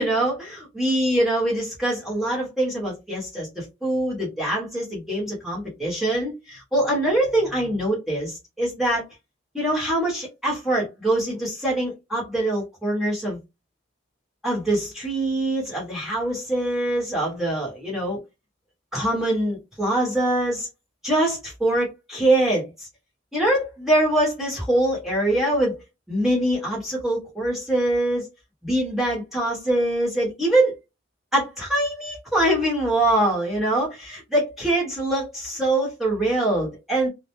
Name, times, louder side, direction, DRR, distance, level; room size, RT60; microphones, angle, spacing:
voice 1, 0.0-9.0 9.5-13.4 14.4-18.2 18.9-20.7 21.0-22.6 23.3-25.7 26.1-28.3 28.6-30.7 31.3-37.1, right 1 dB, ahead, 0.9 m, -23 dB
2.1 x 2.1 x 2.9 m
head